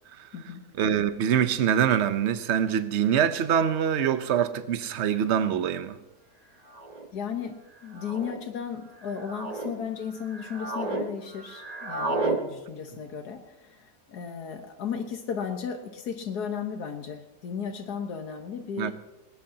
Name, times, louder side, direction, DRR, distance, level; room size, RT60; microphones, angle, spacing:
voice 1, 0.8-6.0 18.8-18.9, right 8 dB, 55° right, 1.0 m, -24 dB
sound 1, 5.4-5.7 6.7-7.1 7.9-8.4 9.0-9.7 10.2-11.1 11.3-12.4, right 3 dB, 25° right, 1.2 m, -32 dB
voice 2, 7.1-18.9, left 7 dB, 85° left, 1.7 m, -35 dB
20.0 x 19.5 x 2.9 m
omnidirectional pair, 1.7 m